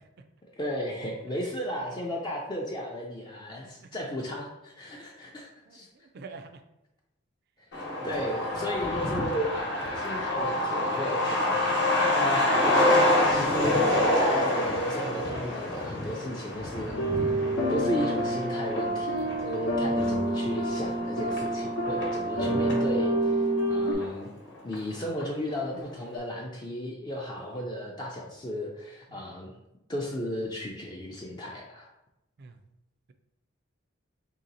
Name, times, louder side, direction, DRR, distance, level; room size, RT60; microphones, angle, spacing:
voice 1, 0.6-5.9 7.7-11.6 12.0-13.9 14.2-24.3 24.6-29.5 29.9-31.9, equal, 20° left, -2 dB, 0.4 m, -35 dB
voice 2, 5.7-6.6 8.0-8.1 29.1-29.2 32.4-32.6, right 4 dB, 55° right, 8 dB, 0.4 m, -47 dB
Truck, 7.7-22.9 23.2-23.3 23.6-24.5 24.7-24.8 25.2-25.6, left 1 dB, 60° left, 1.0 m, -27 dB
sound 1, 16.9-23.9, right 1 dB, 90° left, 0.8 m, -28 dB
3.2 x 2.8 x 3.9 m, 0.91 s
head